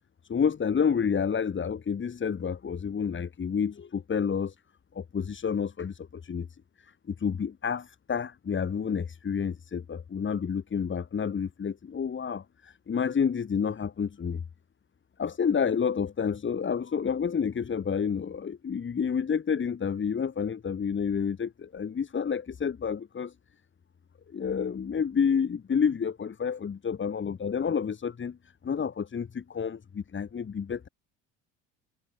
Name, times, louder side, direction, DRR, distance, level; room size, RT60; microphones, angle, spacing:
voice 1, 0.3-4.5 4.9-6.5 6.8-14.4 15.2-23.3 24.3-28.4 28.6-30.9, left 6 dB, 30° left, 3.3 m, -29 dB
hypercardioid pair, 70°, 36 cm